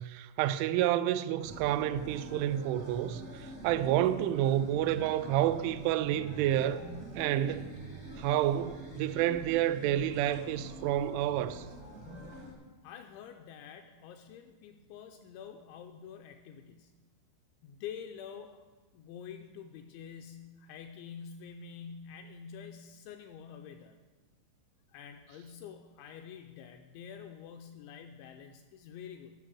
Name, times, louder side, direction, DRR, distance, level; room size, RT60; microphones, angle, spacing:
voice 1, 0.0-6.8 7.2-7.8 8.2-11.6, right 12 dB, 85° right, 2.8 m, -29 dB
sound 1, 1.4-12.5, right 1 dB, 65° right, 0.7 m, -46 dB
voice 2, 12.8-16.9 17.6-18.6 18.9-24.0 24.9-29.3, left 7 dB, 85° left, 2.6 m, -47 dB
13.0 x 6.5 x 6.2 m
omnidirectional pair, 5.7 m